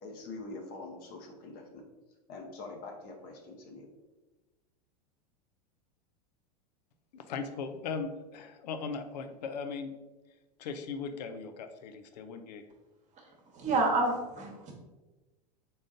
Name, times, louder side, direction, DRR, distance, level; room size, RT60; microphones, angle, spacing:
voice 1, 0.0-1.8 2.3-3.9, left 3 dB, 45° left, 2 dB, 0.8 m, -44 dB
voice 2, 7.1-9.9 10.6-12.6, left 5 dB, 80° left, 8 dB, 0.5 m, -38 dB
voice 3, 13.5-14.7, right 2 dB, 35° right, 0 dB, 1.1 m, -28 dB
3.9 x 3.7 x 2.5 m, 1.2 s
hypercardioid pair, 100°, 21 cm